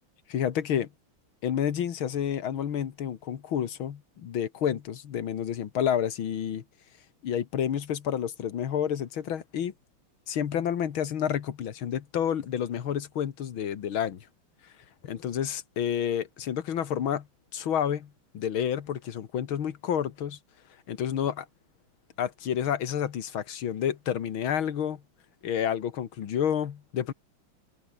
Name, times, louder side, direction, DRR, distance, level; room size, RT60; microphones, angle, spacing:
voice 1, 0.3-0.9 1.4-6.6 7.2-9.7 10.3-14.3 15.0-17.3 17.5-20.4 20.9-21.5 22.2-25.0 25.4-27.1, left 9 dB, 80° left, 2.3 m, -29 dB
omnidirectional pair, 2.2 m